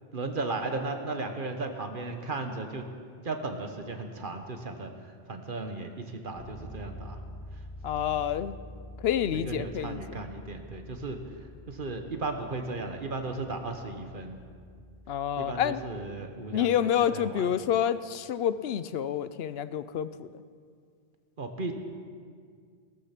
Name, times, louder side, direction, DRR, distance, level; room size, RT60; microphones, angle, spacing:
voice 1, 0.1-2.9 3.2-7.2 9.3-14.4 15.4-17.5 21.4-21.7, right 3 dB, 55° right, 6 dB, 1.4 m, -36 dB
Bass guitar, 6.3-16.2, left 1 dB, ahead, 3.6 m, -47 dB
voice 2, 7.8-8.6 9.0-10.0 15.1-15.8 16.5-20.3, left 9 dB, 75° left, 14 dB, 0.8 m, -28 dB
17.0 x 14.0 x 5.9 m, 2.1 s
omnidirectional pair, 1.1 m